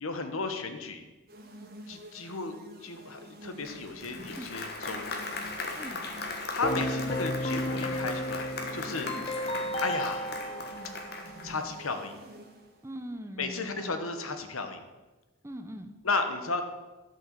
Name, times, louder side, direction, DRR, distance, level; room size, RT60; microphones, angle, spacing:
voice 1, 0.0-1.0 1.9-2.5 2.8-5.1 6.5-9.1 9.8-10.3 11.4-12.2 13.4-14.8 16.0-16.6, left 3 dB, 85° left, 7 dB, 1.2 m, -34 dB
sound 1, 1.3-12.8, right 1 dB, 45° right, 1.5 m, -49 dB
Applause, 3.6-11.6, left 3 dB, 50° left, 1.4 m, -38 dB
Keyboard (musical), 6.6-11.6, equal, 30° left, 0.6 m, -33 dB
voice 2, 12.8-14.0 15.4-15.9, equal, 10° right, 6 dB, 0.7 m, -41 dB
11.5 x 5.6 x 7.5 m, 1.2 s
head